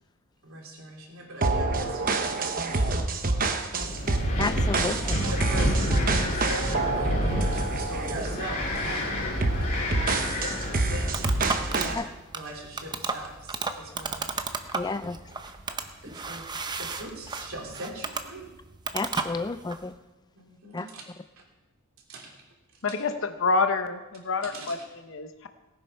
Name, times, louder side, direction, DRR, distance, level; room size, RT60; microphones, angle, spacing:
voice 1, 0.4-4.4 5.3-9.9 10.4-12.0 12.3-14.3 14.7-15.0 15.7-16.4 16.8-18.5 20.3-21.0 22.1-22.4 22.7-22.8 24.4-24.7, right 1 dB, 65° right, -1 dB, 3.2 m, -42 dB
sound 1, 1.4-8.4 8.7-9.0 9.4-12.0, right 3 dB, 40° right, 1.0 m, -27 dB
Wind, 3.8-11.9, equal, 40° left, 2.7 m, -29 dB
voice 2, 4.4-5.2 12.0-12.1 14.7-15.2 18.9-19.9 20.7-20.9, left 3 dB, 20° left, 11 dB, 0.4 m, -31 dB
sound 2, 10.4-19.9, right 4 dB, 20° right, 0.7 m, -34 dB
voice 3, 22.8-25.5, left 4 dB, 60° left, 8 dB, 0.8 m, -28 dB
18.5 x 8.7 x 5.6 m, 1.1 s
head